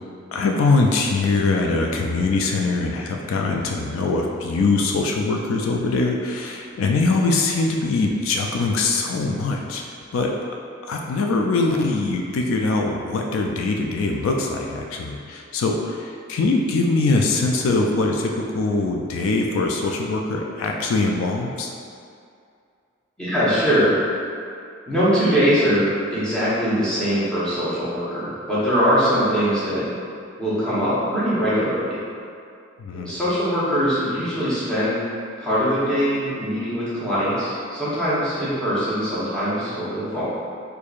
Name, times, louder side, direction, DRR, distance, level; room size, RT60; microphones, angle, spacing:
voice 1, 0.3-9.8 10.1-10.4 10.9-21.7 32.8-33.1, left 3 dB, 80° left, 1 dB, 0.3 m, -22 dB
voice 2, 23.2-23.9 24.9-29.9 30.4-32.0 33.0-35.0 35.4-40.2, equal, 5° left, -11 dB, 0.9 m, -22 dB
4.5 x 2.6 x 2.4 m, 2.4 s
head